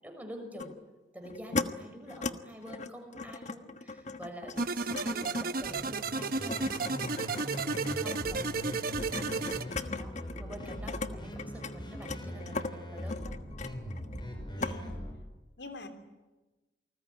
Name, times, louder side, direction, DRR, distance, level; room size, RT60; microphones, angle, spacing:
voice 1, 0.0-0.7 1.1-7.7 8.0-8.4 9.2-13.4 15.8-15.9, equal, 10° right, 3 dB, 6.5 m, -47 dB
sound 1, 0.6-0.7 1.2-1.7 2.1-2.3 2.7-11.1 11.4-14.3 14.6-14.8, left 3 dB, 45° left, 1.3 m, -38 dB
sound 2, 4.6-9.6, right 4 dB, 55° right, 1.0 m, -33 dB
sound 3, 5.6-15.1, equal, 25° left, 6.1 m, -41 dB
voice 2, 6.9-8.7 9.6-9.9 14.6-15.0 15.6-15.9, left 2 dB, 80° left, 7 dB, 3.4 m, -48 dB
28.5 x 20.5 x 9.8 m, 1.1 s
head